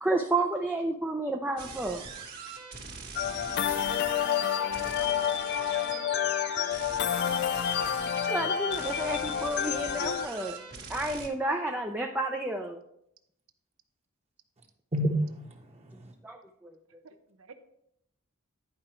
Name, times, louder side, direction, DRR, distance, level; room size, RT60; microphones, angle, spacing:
voice 1, 0.0-2.1 3.7-3.8 7.1-7.2 8.3-10.6 10.9-12.8 16.2-16.8, right 2 dB, 10° right, 0.5 m, -31 dB
sound 1, 1.6-11.3, right 5 dB, 45° right, 1.6 m, -43 dB
sound 2, 3.2-10.3, left 9 dB, 50° left, 0.3 m, -29 dB
voice 2, 4.7-6.1 17.0-17.5, right 4 dB, 70° right, 0.8 m, -46 dB
voice 3, 7.5-8.5 14.6-14.7 14.9-16.1, right 1 dB, 30° right, 1.2 m, -33 dB
11.0 x 4.9 x 4.4 m
head